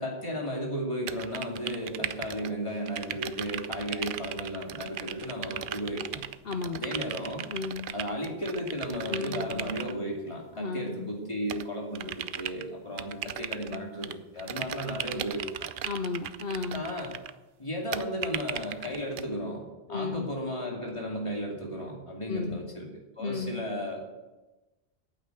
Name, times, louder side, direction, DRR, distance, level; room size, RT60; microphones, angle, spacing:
voice 1, 0.0-6.2 6.6-7.4 7.9-15.7 16.7-17.1 17.6-19.6 19.9-22.9 23.2-24.0, equal, 30° left, -1 dB, 2.6 m, -34 dB
sound 1, 1.1-2.5 2.9-9.9 11.5-12.6 13.0-14.1 14.4-17.3 17.9-19.2, right 10 dB, 65° right, 0.7 m, -37 dB
voice 2, 6.4-6.8 7.5-7.9 9.1-9.7 10.6-11.1 15.8-16.8 19.9-20.3 22.3-22.6 23.2-23.6, left 4 dB, 70° left, 5 dB, 1.0 m, -34 dB
8.9 x 8.8 x 8.0 m, 1.1 s
omnidirectional pair, 1.0 m